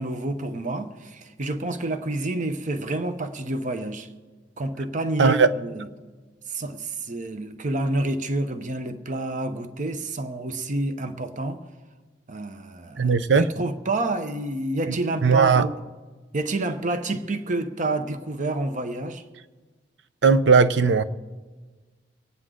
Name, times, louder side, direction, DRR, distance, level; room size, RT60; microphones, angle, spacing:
voice 1, 0.0-4.1 4.6-5.9 6.5-11.6 12.3-15.7 16.3-19.2, right 2 dB, 45° right, 0.9 m, -28 dB
voice 2, 5.2-5.5 13.0-13.5 14.9-15.0 15.2-15.7 20.2-21.0, right 5 dB, 80° right, 0.6 m, -18 dB
25.0 x 9.6 x 3.8 m
head